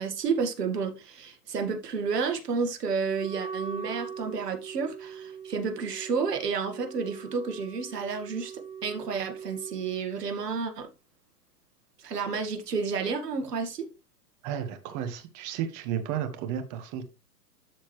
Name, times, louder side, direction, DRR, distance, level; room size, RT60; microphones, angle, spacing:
voice 1, 0.0-10.9 12.0-13.9, right 5 dB, 85° right, 2.0 m, -31 dB
Wind instrument woodwind instrument, 3.0-10.1, right 6 dB, 15° right, 1.1 m, -41 dB
voice 2, 14.4-17.1, right 9 dB, 40° right, 1.8 m, -33 dB
12.5 x 4.4 x 3.3 m
hypercardioid pair, 125°, 46 cm